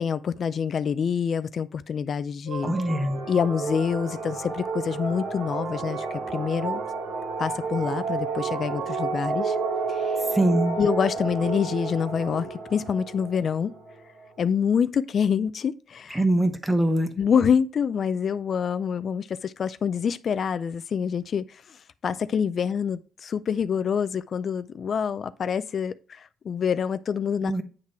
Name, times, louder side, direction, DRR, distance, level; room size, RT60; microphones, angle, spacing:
voice 1, 0.0-2.7 3.3-6.8 7.4-9.6 9.9-10.2 10.8-13.7 14.4-16.2 17.2-27.6, left 7 dB, 55° left, 0.3 m, -26 dB
sound 1, 2.5-14.3, right 4 dB, 85° right, 2.0 m, -31 dB
voice 2, 2.6-3.2 10.3-10.8 16.1-17.1 27.4-27.6, right 1 dB, 10° right, 0.9 m, -23 dB
8.8 x 3.7 x 4.3 m
cardioid pair, 90°, 0 cm